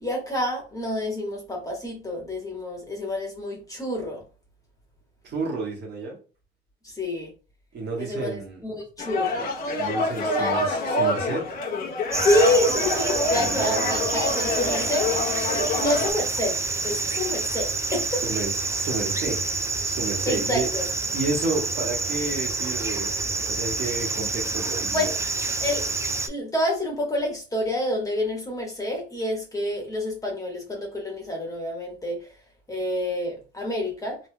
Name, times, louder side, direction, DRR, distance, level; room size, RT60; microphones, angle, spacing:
voice 1, 0.0-4.2 6.8-7.3 8.0-9.5 10.4-10.6 12.2-15.1 15.5-18.2 20.2-20.8 24.9-25.1 25.6-25.9 26.3-32.3 32.7-34.2, left 1 dB, 15° left, 1.4 m, -28 dB
voice 2, 5.2-6.2 7.7-8.6 9.8-11.5 13.3-14.2 18.2-19.4 19.8-20.7 21.1-25.1, right 3 dB, 55° right, 1.4 m, -31 dB
sound 1, 9.0-16.1, left 2 dB, 45° left, 1.0 m, -27 dB
sound 2, 12.1-26.3, right 3 dB, 15° right, 0.4 m, -28 dB
3.2 x 3.0 x 2.2 m
cardioid pair, 110°, 21 cm